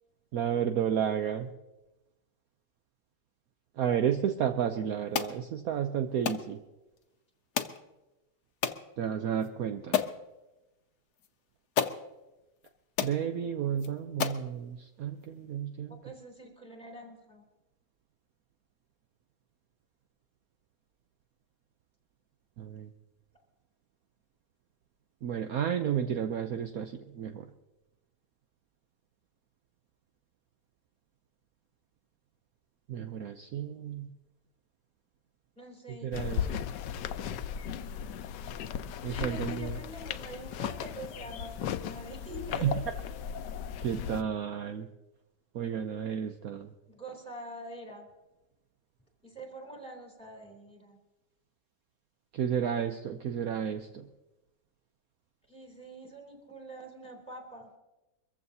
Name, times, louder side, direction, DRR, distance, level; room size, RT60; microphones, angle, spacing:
voice 1, 0.3-1.5 3.8-6.6 9.0-10.0 13.0-16.0 22.6-22.9 25.2-27.4 32.9-34.1 36.0-36.5 39.0-39.8 42.6-42.7 43.8-44.9 45.5-46.7 52.3-54.0, right 8 dB, 65° right, 6 dB, 1.1 m, -32 dB
sound 1, 5.1-5.4 6.3-6.5 7.6-7.8 8.6-8.8 9.4-9.5 9.9-10.2 11.2-11.3 11.8-12.0 12.6-12.7 13.0-13.2 13.8-13.9 14.2-14.5, left 8 dB, 70° left, 1.3 m, -30 dB
voice 2, 15.9-17.4 35.6-36.8 39.1-42.9 46.9-48.1 49.2-51.0 55.5-57.7, right 1 dB, 5° left, 1 dB, 3.1 m, -45 dB
sound 2, 36.1-44.2, left 9 dB, 90° left, 1.3 m, -36 dB
23.5 x 15.0 x 2.8 m, 1.0 s
omnidirectional pair, 1.8 m